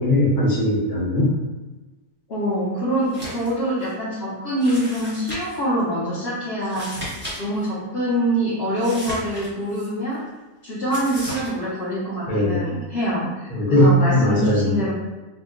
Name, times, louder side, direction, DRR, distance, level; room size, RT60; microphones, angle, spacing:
voice 1, 0.0-1.4 12.3-12.6 13.5-14.7, left 1 dB, 75° left, -5 dB, 1.3 m, -19 dB
voice 2, 2.3-6.9 7.4-10.2 10.6-14.9, equal, 50° left, -10 dB, 0.8 m, -25 dB
sound 1, 3.0-3.5 3.8-3.9 4.6-5.6 6.6-7.4 7.6-7.7 8.8-9.9 10.9-11.5, equal, 10° right, 0.6 m, -34 dB
3.6 x 2.1 x 2.4 m, 1.2 s
omnidirectional pair, 1.7 m